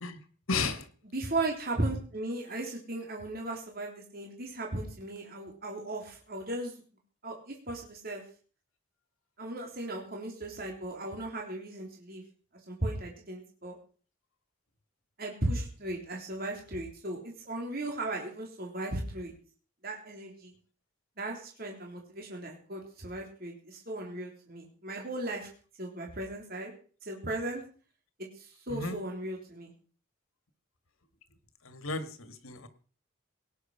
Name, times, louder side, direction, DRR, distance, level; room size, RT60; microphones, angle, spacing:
voice 1, 0.5-0.9 28.7-29.0 31.6-32.7, left 4 dB, 80° left, 10 dB, 2.0 m, -33 dB
voice 2, 1.1-6.7 7.2-8.2 9.4-12.2 12.7-13.8 15.2-19.3 19.8-20.5 21.2-25.5 25.8-26.7 27.0-27.6 28.2-29.7, right 2 dB, 45° right, 0 dB, 3.5 m, -36 dB
18.0 x 9.8 x 5.7 m, 0.40 s
head